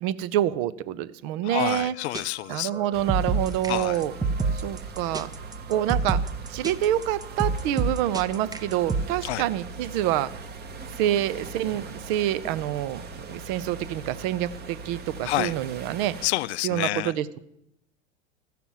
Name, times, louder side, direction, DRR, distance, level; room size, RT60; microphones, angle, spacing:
voice 1, 0.0-1.9 2.5-4.1 4.6-5.3 5.7-6.2 6.5-10.3 11.0-16.1 16.6-17.4, right 12 dB, 50° right, 15 dB, 0.7 m, -27 dB
voice 2, 1.4-2.7 3.7-4.0 9.2-9.4 15.2-15.5 16.2-17.1, left 16 dB, 70° left, 19 dB, 0.5 m, -28 dB
sound 1, 1.8-1.9 2.1-2.2 2.7-9.0, right 4 dB, 10° right, 0.6 m, -27 dB
sound 2, 2.9-16.3, right 4 dB, 30° right, 1.1 m, -41 dB
14.0 x 5.9 x 7.3 m, 0.81 s
hypercardioid pair, 95°, 34 cm